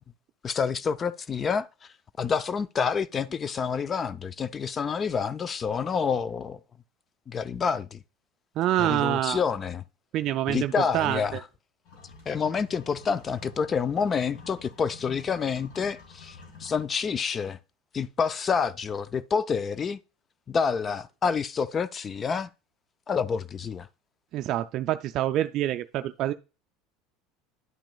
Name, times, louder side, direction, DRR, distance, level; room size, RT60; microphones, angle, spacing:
voice 1, 0.4-6.6 7.3-8.0 8.8-9.8 10.5-11.4 12.3-17.6 17.9-20.0 20.5-22.5 23.1-23.9, left 6 dB, 30° left, 0.3 m, -28 dB
voice 2, 8.6-9.4 10.1-11.4 24.3-26.3, right 13 dB, 55° right, 0.3 m, -26 dB
sound 1, 11.9-16.8, left 5 dB, 65° left, 3.0 m, -48 dB
10.5 x 6.0 x 2.3 m
supercardioid pair, 95°, 0 cm